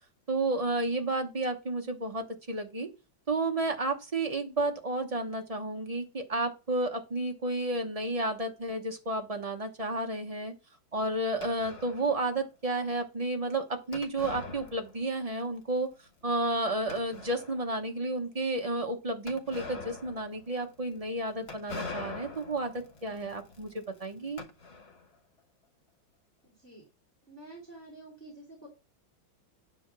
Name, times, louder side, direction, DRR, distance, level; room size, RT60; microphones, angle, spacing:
voice 1, 0.3-2.9 3.3-10.5 10.9-15.9 16.2-22.7 23.0-24.4, right 2 dB, 30° right, 4 dB, 0.6 m, -31 dB
sound 1, 11.4-12.2 13.9-15.3 15.6-15.7 16.2-16.3 16.9-17.7 19.3-25.1, left 4 dB, 40° left, 1.0 m, -44 dB
voice 2, 26.4-26.9 27.3-28.7, right 2 dB, 5° left, -3 dB, 3.1 m, -49 dB
9.8 x 4.4 x 6.0 m, 0.30 s
omnidirectional pair, 2.2 m